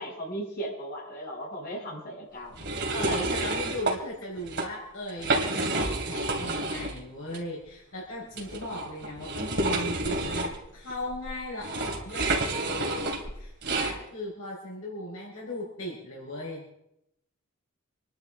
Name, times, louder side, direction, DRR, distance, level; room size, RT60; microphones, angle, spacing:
voice 1, 0.0-2.7, right 1 dB, 45° left, -5 dB, 7.4 m, -37 dB
sound 1, 2.6-4.0 4.4-4.7 5.1-7.0 7.3-7.4 8.3-14.0, right 2 dB, 55° right, 2.9 m, -29 dB
voice 2, 2.9-16.6, left 1 dB, 75° left, -4 dB, 4.8 m, -37 dB
27.0 x 11.5 x 3.8 m, 0.81 s
head